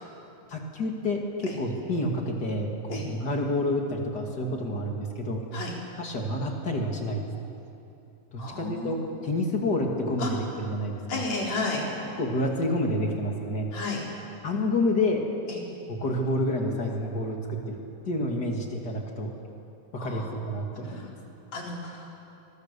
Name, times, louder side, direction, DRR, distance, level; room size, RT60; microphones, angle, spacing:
voice 1, 0.5-5.4 6.0-7.2 8.3-9.0 9.2-11.3 12.2-13.7 14.4-15.2 15.9-17.8 18.0-19.3 19.9-21.1, left 1 dB, 35° left, 1 dB, 2.7 m, -29 dB
voice 2, 8.4-8.9 10.2-10.3 11.1-11.8 13.7-14.0 15.5-15.6 20.0-20.3 20.8-21.1 21.5-22.1, left 3 dB, 65° left, -2 dB, 5.3 m, -32 dB
25.5 x 22.0 x 6.9 m, 2.8 s
omnidirectional pair, 3.4 m